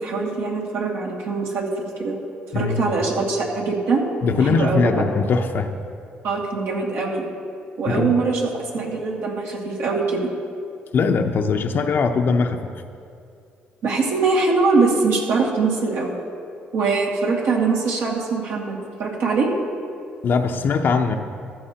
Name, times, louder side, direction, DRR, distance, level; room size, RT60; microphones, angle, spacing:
voice 1, 0.0-2.2 2.5-4.0 4.4-5.0 6.2-7.3 7.8-10.3 13.8-16.1 16.7-19.5, right 4 dB, 75° right, -2 dB, 2.2 m, -22 dB
voice 2, 2.5-2.8 4.2-5.7 7.9-8.1 10.9-12.7 20.2-21.2, left 4 dB, 55° left, 5 dB, 0.7 m, -20 dB
15.0 x 12.5 x 2.9 m, 2.4 s
cardioid pair, 85°, 4 cm